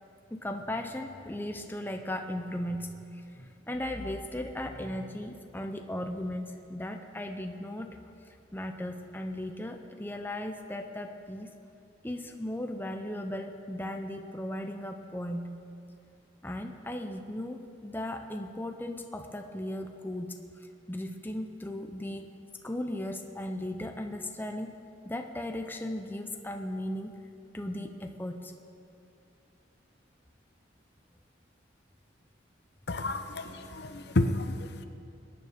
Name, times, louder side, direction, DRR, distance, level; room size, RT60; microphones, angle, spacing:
voice 1, 0.3-7.9 8.5-11.5 12.0-15.5 16.4-20.3 20.9-22.3 22.6-24.8 25.0-27.1 27.5-28.5, left 1 dB, 10° left, 5 dB, 0.7 m, -36 dB
voice 2, 32.9-34.8, left 2 dB, 55° left, 9 dB, 0.7 m, -30 dB
21.5 x 9.5 x 5.0 m, 2.6 s
head